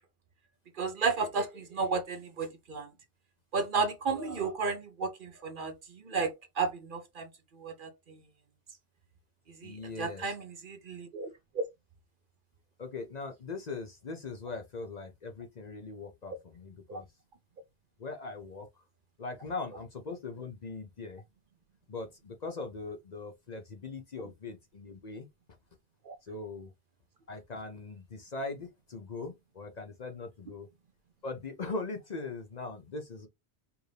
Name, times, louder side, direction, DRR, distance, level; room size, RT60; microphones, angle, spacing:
voice 1, 0.8-2.9 3.5-7.3 7.5-8.2 9.6-11.3 11.5-11.6 16.9-17.0 26.1-26.2, right 4 dB, 55° right, 0.8 m, -33 dB
voice 2, 9.6-10.3 12.8-17.1 18.0-18.7 19.2-21.2 21.9-25.3 26.2-26.7 27.3-30.7 31.2-33.3, left 3 dB, 45° left, 0.7 m, -40 dB
4.7 x 2.6 x 3.2 m
omnidirectional pair, 1.1 m